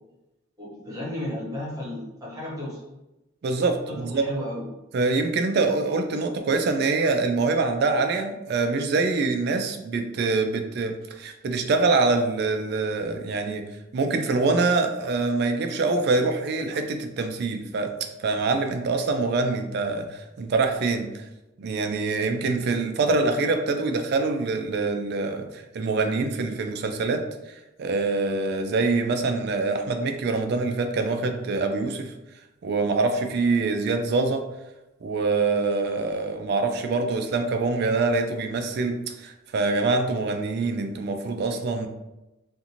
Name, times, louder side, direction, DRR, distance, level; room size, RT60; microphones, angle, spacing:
voice 1, 0.6-2.8 3.9-4.7, left 1 dB, 15° right, -7 dB, 1.0 m, -33 dB
voice 2, 3.4-4.2 4.9-13.7 13.9-17.9 18.2-21.2 21.6-27.5 27.8-32.1 32.6-34.4 35.0-41.9, right 3 dB, 55° right, 6 dB, 0.3 m, -25 dB
2.5 x 2.5 x 2.8 m, 0.98 s
head